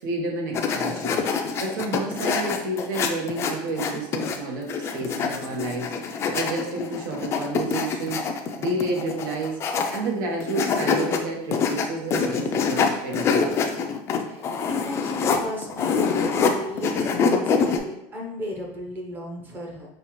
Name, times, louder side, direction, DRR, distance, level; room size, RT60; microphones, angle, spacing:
voice 1, 0.0-8.3 8.6-9.6 9.9-13.8, right 2 dB, 90° right, 1 dB, 1.1 m, -30 dB
sound 1, 0.5-4.4 4.7-10.1 10.4-11.2 11.5-16.5 16.8-17.8, left 5 dB, 25° left, 0.4 m, -25 dB
voice 2, 14.1-19.9, equal, 20° right, 0 dB, 0.6 m, -35 dB
5.4 x 2.4 x 3.0 m, 0.84 s
cardioid pair, 165°, 10 cm